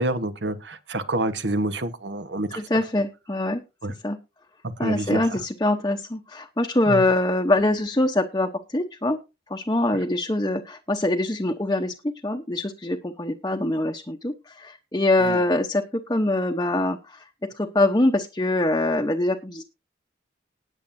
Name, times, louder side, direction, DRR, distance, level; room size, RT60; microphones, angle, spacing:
voice 1, 0.0-2.6 3.8-3.9 4.8-5.2 6.9-7.1 15.2-15.4, right 1 dB, 75° right, 1.2 m, -27 dB
voice 2, 2.5-3.6 4.0-4.2 4.8-9.2 9.5-15.8 16.1-17.3 17.6-19.6, left 2 dB, 20° left, 0.9 m, -24 dB
19.5 x 7.3 x 2.7 m
head